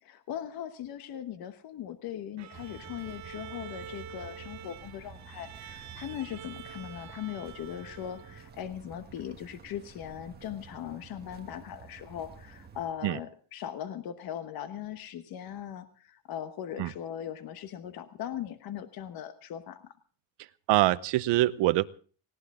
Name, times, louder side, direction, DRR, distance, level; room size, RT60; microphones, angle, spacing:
voice 1, 0.0-19.9, left 10 dB, 50° left, 10 dB, 1.1 m, -39 dB
Bowed string instrument, 2.4-8.7, right 9 dB, 40° right, 1.0 m, -47 dB
sound 1, 2.5-12.9, right 6 dB, 20° right, 1.5 m, -50 dB
voice 2, 20.7-21.8, right 16 dB, 70° right, 13 dB, 0.9 m, -24 dB
19.0 x 17.5 x 3.7 m, 0.41 s
cardioid pair, 175°, 45 cm